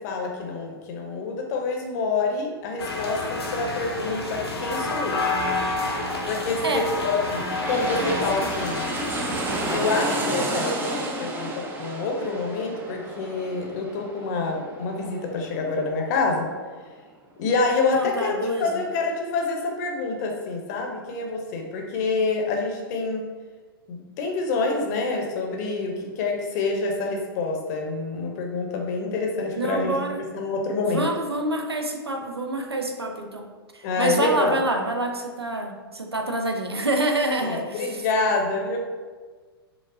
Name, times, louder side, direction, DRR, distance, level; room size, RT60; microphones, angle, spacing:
voice 1, 0.0-5.2 6.3-8.9 9.7-16.5 17.4-23.3 23.9-31.1 33.8-34.6 37.4-38.8, left 3 dB, 45° left, 1 dB, 0.6 m, -27 dB
sound 1, 2.8-9.8, left 2 dB, 80° left, 0.6 m, -29 dB
sound 2, 5.1-16.5 16.8-16.9, right 2 dB, 15° right, 0.3 m, -32 dB
voice 2, 7.9-8.5 17.8-18.8 29.5-30.2 30.8-33.5 33.7-38.1, right 1 dB, 90° right, 4 dB, 0.4 m, -27 dB
4.8 x 2.0 x 2.5 m, 1.4 s
figure-of-eight pair, 105°, 13 cm